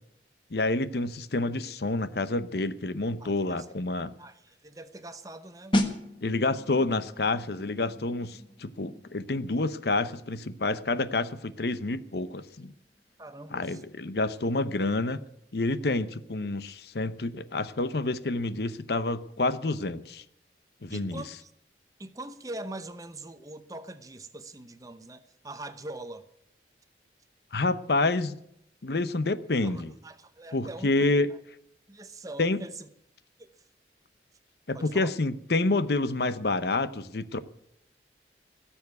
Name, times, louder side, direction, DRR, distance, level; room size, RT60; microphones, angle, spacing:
voice 1, 0.5-4.1 6.2-12.7 13.5-15.2 15.5-20.2 20.8-21.2 27.5-28.4 28.8-29.9 30.5-31.3 32.4-32.6 34.7-37.4, left 2 dB, 65° left, 0.8 m, -28 dB
voice 2, 3.2-3.7 4.2-6.1 13.2-13.8 20.9-21.5 22.0-26.3 29.6-31.1 31.9-32.9 33.4-33.5 34.7-35.1, right 2 dB, 20° right, 0.8 m, -43 dB
sound 1, 5.7-16.2 16.5-16.8, left 1 dB, 25° left, 1.4 m, -37 dB
17.0 x 7.2 x 9.5 m
head